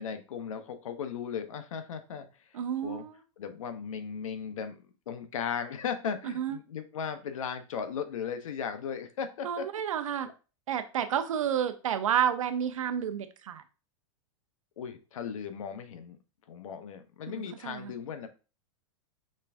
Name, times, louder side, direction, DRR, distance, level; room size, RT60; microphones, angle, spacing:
voice 1, 0.0-2.5 2.8-3.0 3.4-4.8 5.1-9.7 14.8-16.2 16.5-18.3, left 7 dB, 85° left, 9 dB, 0.9 m, -37 dB
voice 2, 2.5-3.2 6.2-6.6 9.4-10.3 10.7-13.6 17.4-17.9, right 9 dB, 90° right, 9 dB, 0.7 m, -30 dB
5.4 x 3.4 x 2.6 m, 0.33 s
hypercardioid pair, 135°, 17 cm